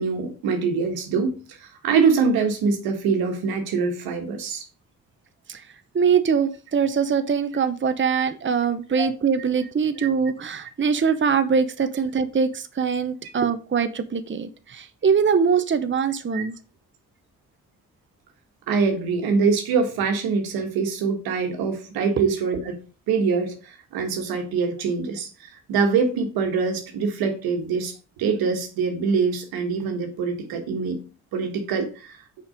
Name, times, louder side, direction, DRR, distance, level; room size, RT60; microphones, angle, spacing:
voice 1, 0.0-4.6 8.9-9.1 10.0-10.1 16.3-16.4 18.7-22.8 23.1-31.0 31.3-32.2, right 5 dB, 80° right, 1.5 m, -24 dB
voice 2, 5.9-16.5, right 6 dB, 30° right, 0.9 m, -23 dB
6.2 x 5.3 x 5.1 m
hypercardioid pair, 45°, 36 cm